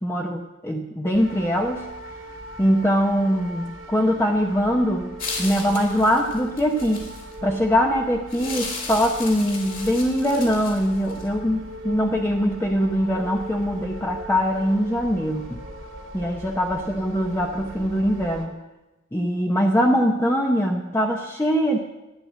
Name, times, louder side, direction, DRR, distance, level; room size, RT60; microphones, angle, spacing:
voice 1, 0.0-1.9 2.6-5.1 5.4-7.1 7.4-15.6 16.1-18.5 19.1-21.8, equal, 15° left, 0 dB, 0.9 m, -22 dB
sound 1, 1.1-18.5, right 1 dB, 90° right, 2.3 m, -39 dB
sound 2, 5.2-7.3 8.3-11.3, left 3 dB, 45° left, 3.0 m, -35 dB
12.0 x 10.0 x 7.5 m, 1.0 s
head